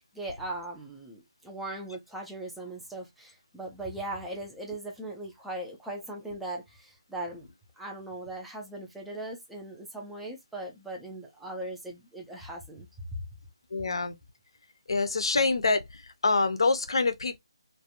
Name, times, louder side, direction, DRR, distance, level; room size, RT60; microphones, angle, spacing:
voice 1, 0.0-7.5 7.8-13.3, right 1 dB, ahead, 0.3 m, -39 dB
voice 2, 13.7-14.1 14.9-17.4, left 3 dB, 65° left, 0.5 m, -26 dB
2.4 x 2.2 x 2.7 m
hypercardioid pair, 170°, 3 cm